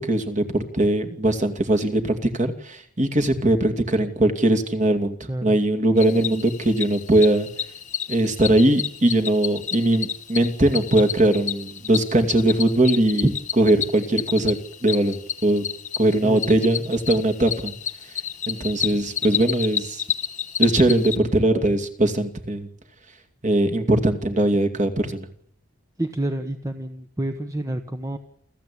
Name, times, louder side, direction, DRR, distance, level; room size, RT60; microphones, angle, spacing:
voice 1, 0.0-7.5 8.1-14.6 14.8-15.6 16.0-17.7 18.5-20.1 20.6-22.7 23.4-25.3, right 1 dB, 35° right, 5 dB, 2.6 m, -20 dB
Cricket, 6.0-21.2, left 9 dB, 35° left, 1.3 m, -30 dB
voice 2, 26.0-28.2, right 1 dB, 15° right, 6 dB, 1.2 m, -29 dB
28.5 x 14.5 x 8.7 m, 0.68 s
head